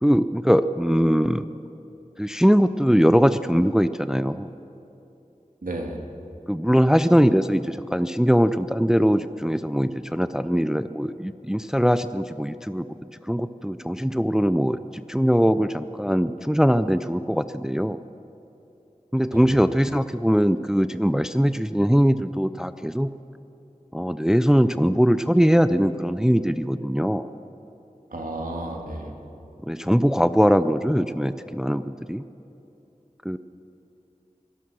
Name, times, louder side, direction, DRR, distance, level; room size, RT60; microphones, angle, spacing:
voice 1, 0.0-1.5 2.2-4.5 6.5-12.9 13.3-18.0 19.1-23.1 23.9-27.3 29.7-32.2 33.2-33.4, equal, 5° right, 13 dB, 0.5 m, -21 dB
voice 2, 5.6-6.0 19.3-19.6 28.1-29.2, right 1 dB, 90° right, 1 dB, 2.4 m, -32 dB
24.5 x 17.0 x 6.3 m, 2.9 s
wide cardioid pair, 45°, 14 cm